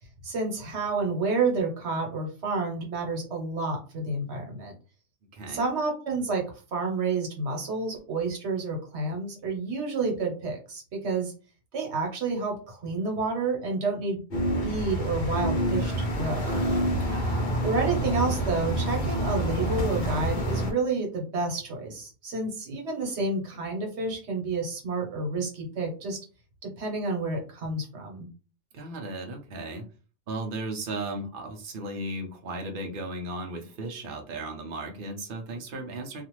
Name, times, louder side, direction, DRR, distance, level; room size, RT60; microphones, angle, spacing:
voice 1, 0.2-4.7 5.5-6.4 6.7-11.3 11.7-14.2 14.6-16.6 17.6-26.2 26.6-28.3, right 3 dB, 75° right, 1 dB, 1.2 m, -29 dB
sound 1, 14.3-20.7, right 1 dB, 45° left, 1.0 m, -27 dB
voice 2, 16.9-17.5 28.7-29.8 30.3-36.2, right 2 dB, 55° right, 3 dB, 0.8 m, -36 dB
2.5 x 2.4 x 3.0 m, 0.36 s
omnidirectional pair, 1.1 m